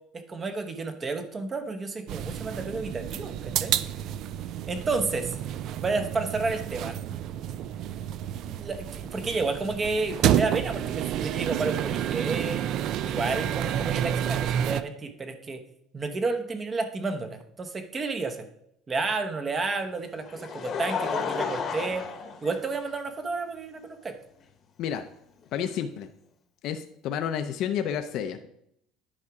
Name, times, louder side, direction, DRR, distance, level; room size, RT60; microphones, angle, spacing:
voice 1, 0.1-3.7 4.7-5.4 5.8-7.0 8.4-12.6 13.0-15.6 15.9-18.5 18.9-22.0 22.4-24.2, right 3 dB, 25° right, 7 dB, 1.0 m, -31 dB
sound 1, 2.1-14.8, right 10 dB, 55° right, 0.4 m, -30 dB
Laughter, 20.0-23.2 24.0-24.1 25.6-25.7, left 5 dB, 40° left, 1.0 m, -32 dB
voice 2, 25.5-26.1 26.6-28.5, left 9 dB, 60° left, 8 dB, 0.5 m, -30 dB
9.8 x 4.9 x 4.8 m, 0.73 s
cardioid pair, 135°, 0 cm